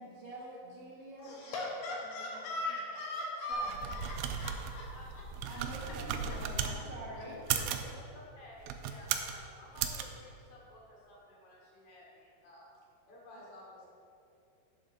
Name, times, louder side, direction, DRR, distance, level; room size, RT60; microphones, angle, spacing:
voice 1, 0.0-1.7 2.0-2.5 3.5-4.6 5.4-8.0 13.3-13.4, right 1 dB, 60° right, -5 dB, 2.9 m, -47 dB
voice 2, 1.2-5.2 5.8-5.9 7.6-7.7, left 1 dB, 70° left, -3 dB, 2.7 m, -39 dB
sound 1, 3.5-6.8 7.4-7.9 8.6-9.4 9.8-10.0, right 8 dB, 85° right, 2.2 m, -36 dB
voice 3, 8.1-12.6 13.1-13.9, left 1 dB, 55° left, -4 dB, 2.1 m, -54 dB
11.5 x 9.1 x 2.6 m, 2.6 s
omnidirectional pair, 5.1 m